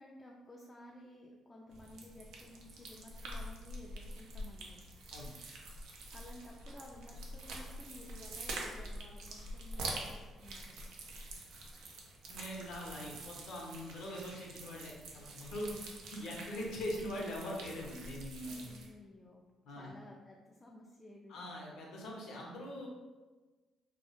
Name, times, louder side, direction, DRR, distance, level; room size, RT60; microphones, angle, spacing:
voice 1, 0.0-4.8 6.1-10.8 18.4-19.4 19.7-21.4, left 1 dB, 25° left, -2 dB, 0.3 m, -54 dB
sound 1, 1.7-18.9, right 1 dB, 80° right, 0.4 m, -46 dB
voice 2, 12.3-15.7 16.0-18.7 19.6-19.9 21.3-22.9, left 1 dB, 75° left, -2 dB, 0.6 m, -42 dB
2.1 x 2.0 x 2.9 m, 1.3 s
supercardioid pair, 60°, 0 cm